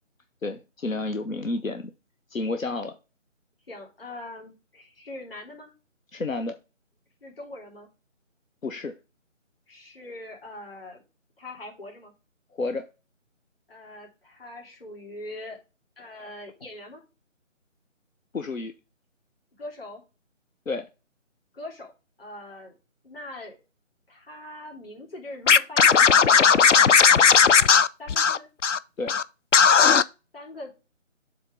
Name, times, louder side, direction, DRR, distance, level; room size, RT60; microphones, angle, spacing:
voice 1, 0.4-1.9 2.3-3.0 6.1-6.5 8.6-8.9 12.5-12.9 18.3-18.7 20.7-20.9 29.0-29.2, left 3 dB, 85° left, 8 dB, 0.9 m, -30 dB
voice 2, 3.7-5.7 7.2-7.9 9.7-11.0 11.4-12.1 13.7-15.6 16.0-17.0 19.6-20.0 21.5-21.9 22.2-22.8 23.0-23.6 24.1-28.5 30.3-30.7, left 1 dB, 45° left, -1 dB, 3.5 m, -42 dB
Scratching (performance technique), 25.5-28.8 29.1-29.2 29.5-30.0, left 6 dB, 70° left, 0.5 m, -16 dB
7.9 x 3.6 x 5.2 m, 0.30 s
figure-of-eight pair, 160°, 39 cm